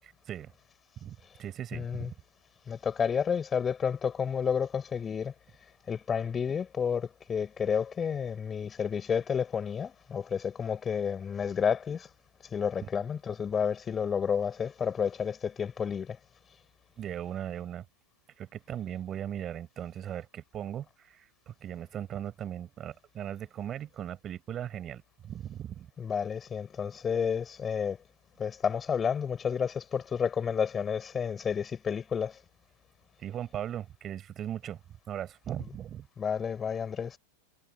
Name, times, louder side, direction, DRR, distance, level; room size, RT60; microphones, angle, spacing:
voice 1, 1.0-2.1 12.8-12.9 17.0-17.8 18.4-25.9 33.2-34.8 35.1-36.1, right 10 dB, 30° right, 6.0 m, -38 dB
voice 2, 1.7-2.1 2.7-5.3 5.9-12.1 12.5-16.2 26.0-28.0 28.4-32.4 36.2-37.2, left 7 dB, 20° left, 7.3 m, -30 dB
figure-of-eight pair, 90°, 0 cm